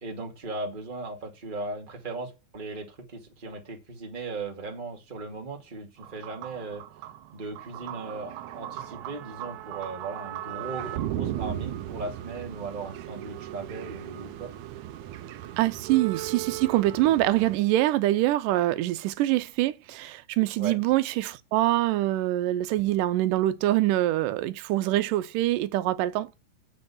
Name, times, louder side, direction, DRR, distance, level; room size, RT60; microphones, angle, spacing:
voice 1, 0.0-6.8 7.3-14.5 20.6-20.8, right 3 dB, 20° right, 2.0 m, -37 dB
sound 1, 6.0-17.6, right 13 dB, 75° right, 2.0 m, -37 dB
voice 2, 15.6-26.3, right 15 dB, 90° right, 2.3 m, -24 dB
7.5 x 6.5 x 7.0 m
omnidirectional pair, 3.7 m